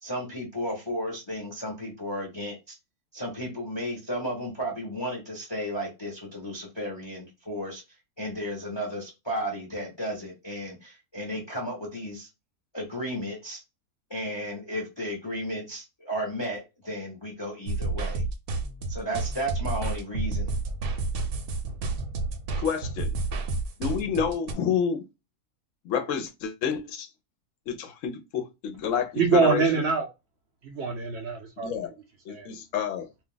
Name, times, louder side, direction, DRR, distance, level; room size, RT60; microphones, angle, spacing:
voice 1, 0.0-2.7 3.1-7.8 8.2-12.3 12.7-13.6 14.1-18.2 18.9-20.5, equal, 25° left, 0.6 m, -34 dB
sound 1, 17.7-24.5, right 3 dB, 75° right, 1.1 m, -30 dB
voice 2, 22.6-23.1 23.8-25.0 25.8-27.1 27.7-29.6 31.6-31.9 32.3-33.1, left 7 dB, 65° left, 0.9 m, -29 dB
voice 3, 29.2-30.1 30.6-31.7 32.3-32.5, right 5 dB, 60° right, 0.7 m, -24 dB
2.6 x 2.3 x 3.7 m
omnidirectional pair, 1.6 m